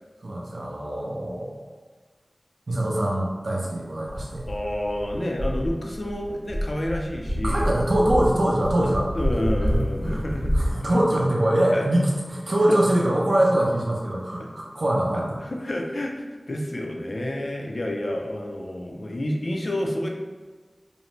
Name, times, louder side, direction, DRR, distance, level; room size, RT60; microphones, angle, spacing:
voice 1, 0.2-1.5 2.7-4.5 7.4-9.1 9.7-10.2 10.5-15.4, right 1 dB, 65° right, -3 dB, 0.5 m, -23 dB
sound 1, 4.0-10.7, equal, 20° right, 0.7 m, -27 dB
voice 2, 4.5-7.7 8.8-10.5 10.8-11.0 11.7-11.9 12.7-12.8 14.4-14.5 15.4-16.1 16.5-20.1, left 1 dB, 60° left, 0 dB, 0.4 m, -29 dB
2.6 x 2.1 x 3.0 m, 1.4 s
wide cardioid pair, 60°, 0 cm